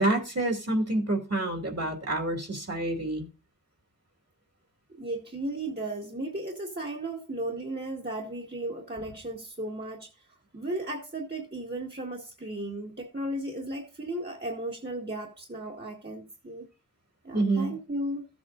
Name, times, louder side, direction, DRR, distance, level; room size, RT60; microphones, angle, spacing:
voice 1, 0.0-3.3 17.3-17.7, right 2 dB, 50° right, 2.7 m, -27 dB
voice 2, 5.0-16.7 17.2-18.2, right 1 dB, 30° right, 1.9 m, -35 dB
14.5 x 7.9 x 2.6 m
wide cardioid pair, 45°, 33 cm